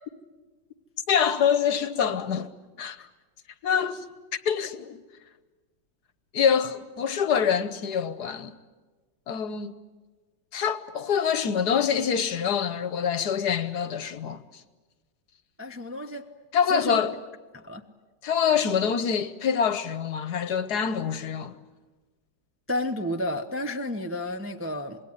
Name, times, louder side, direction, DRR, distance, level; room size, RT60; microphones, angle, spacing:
voice 1, 1.1-2.5 2.8-3.0 3.6-4.0 4.4-5.0 6.3-8.5 9.3-9.7 10.5-14.4 16.5-17.1 18.2-21.6, left 7 dB, 60° left, 1.5 m, -25 dB
voice 2, 15.6-16.2 16.7-17.0 17.5-17.8 22.7-25.0, left 1 dB, 10° right, 0.7 m, -31 dB
26.0 x 21.0 x 9.8 m
omnidirectional pair, 2.0 m